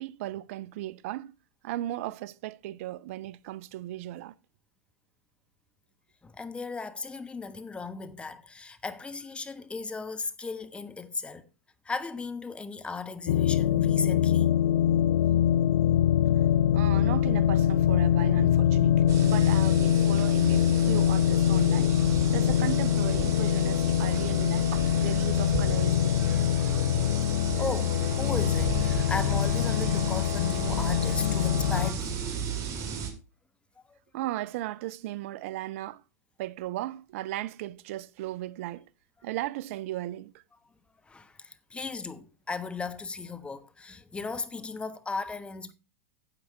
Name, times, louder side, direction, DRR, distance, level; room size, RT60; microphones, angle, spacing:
voice 1, 0.0-1.3 1.6-4.3 16.7-21.9 22.3-26.5 34.1-36.0 36.4-38.9 39.2-40.4, right 15 dB, 55° right, 0.5 m, -36 dB
voice 2, 6.2-11.5 11.8-14.6 27.6-32.2 33.9-34.0 41.1-45.7, left 4 dB, 10° left, 1.1 m, -36 dB
sound 1, 13.3-31.9, left 10 dB, 60° left, 0.5 m, -24 dB
sound 2, 19.1-33.1, right 6 dB, 35° right, 2.4 m, -35 dB
9.8 x 7.8 x 4.7 m
hypercardioid pair, 100°, 9 cm